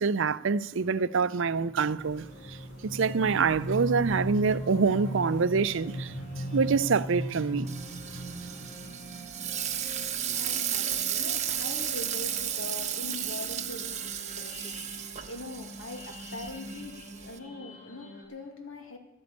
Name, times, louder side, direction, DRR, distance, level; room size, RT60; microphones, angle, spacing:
voice 1, 0.0-2.6 2.8-6.1 6.5-7.7, right 5 dB, 65° right, 0.5 m, -26 dB
sound 1, 1.5-18.2, equal, 40° left, 3.5 m, -39 dB
sound 2, 2.0-8.7, equal, 60° left, 2.5 m, -51 dB
Frying (food), 7.7-17.4, right 10 dB, 35° right, 1.1 m, -34 dB
voice 2, 9.5-19.0, left 2 dB, 75° left, 2.2 m, -43 dB
13.0 x 9.5 x 8.5 m
head